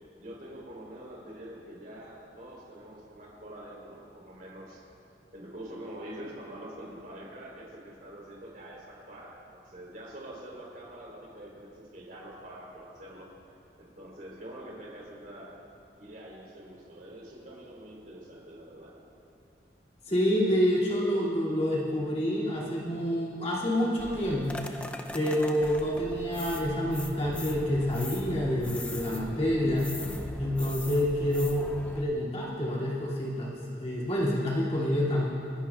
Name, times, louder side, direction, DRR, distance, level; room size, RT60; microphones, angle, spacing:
voice 1, 0.2-4.8 5.3-13.3 13.8-15.5 16.0-18.9, right 1 dB, 50° right, -4 dB, 3.6 m, -45 dB
voice 2, 20.1-29.9 30.4-35.3, equal, 35° left, -6 dB, 2.6 m, -28 dB
sound 1, 24.0-32.0, left 1 dB, 5° left, 0.5 m, -40 dB
28.5 x 11.5 x 2.4 m, 2.6 s
head